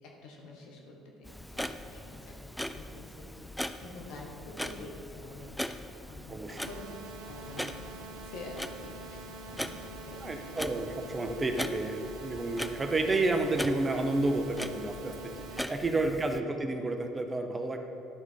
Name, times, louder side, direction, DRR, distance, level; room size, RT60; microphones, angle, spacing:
voice 1, 0.0-3.4 3.8-5.6 6.1-6.8 7.2-10.5 15.5-15.8, left 2 dB, 70° left, 0 dB, 1.3 m, -48 dB
Clock, 1.2-16.4, left 1 dB, 5° left, 0.4 m, -41 dB
voice 2, 6.3-6.6 10.2-17.9, right 2 dB, 25° right, 5 dB, 0.8 m, -31 dB
sound 1, 6.6-15.6, right 3 dB, 80° right, 0.4 m, -46 dB
11.0 x 4.1 x 4.5 m, 2.6 s
hypercardioid pair, 60°, 0 cm